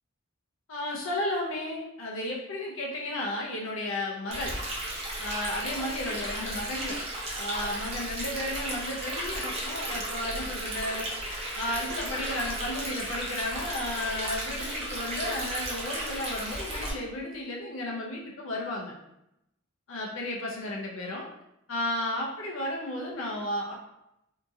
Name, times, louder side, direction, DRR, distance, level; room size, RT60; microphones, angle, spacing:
voice 1, 0.7-4.6 5.2-7.0 7.3-18.9 19.9-21.3 21.7-23.8, left 1 dB, 80° left, -2 dB, 0.6 m, -33 dB
Stream, 4.3-16.9, right 1 dB, 30° right, 0.7 m, -34 dB
2.8 x 2.4 x 2.6 m, 0.83 s
head